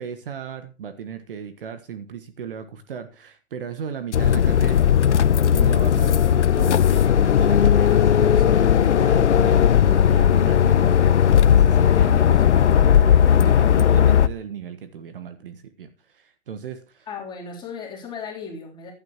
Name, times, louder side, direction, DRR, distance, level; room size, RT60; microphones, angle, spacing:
voice 1, 0.0-4.9 5.5-17.1, right 7 dB, 45° right, 10 dB, 1.3 m, -36 dB
sound 1, 4.1-14.3, left 9 dB, 65° left, 0.8 m, -17 dB
voice 2, 17.1-18.9, left 5 dB, 10° left, -2 dB, 3.5 m, -35 dB
15.5 x 11.5 x 3.0 m, 0.33 s
hypercardioid pair, 145°, 37 cm